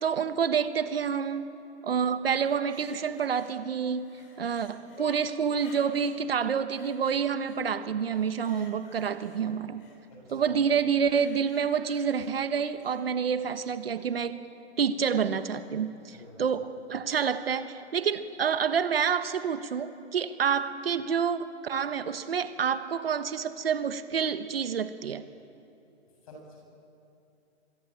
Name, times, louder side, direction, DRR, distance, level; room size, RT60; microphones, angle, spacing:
voice 1, 0.0-1.5 1.8-4.1 4.4-9.9 10.3-14.4 14.8-25.2, right 7 dB, 60° right, 10 dB, 1.3 m, -28 dB
sound 1, 2.5-3.6 3.9-6.2 6.7-7.6 8.0-10.0 11.0-13.0 13.5-13.6, left 3 dB, 55° left, 6.7 m, -51 dB
voice 2, 10.1-10.6 16.1-16.6 26.2-26.6, left 1 dB, 30° left, 0 dB, 7.9 m, -48 dB
25.0 x 22.0 x 9.0 m, 2.8 s
hypercardioid pair, 180°, 34 cm